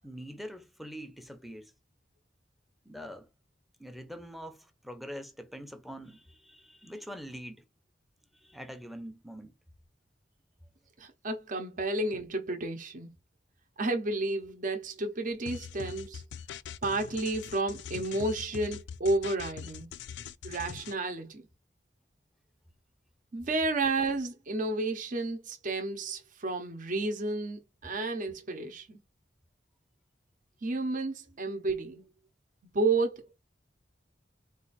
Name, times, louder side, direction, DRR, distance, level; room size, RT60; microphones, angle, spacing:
voice 1, 0.0-1.7 2.9-3.3 3.8-7.6 8.3-9.5, equal, ahead, 0.6 m, -44 dB
voice 2, 11.0-13.1 13.8-16.2 16.8-19.9 20.4-21.4 23.3-29.0 30.6-32.0 32.6-33.3, right 2 dB, 50° right, 0.8 m, -31 dB
sound 1, 15.5-20.9, left 7 dB, 70° left, 0.4 m, -42 dB
4.1 x 2.5 x 4.0 m
head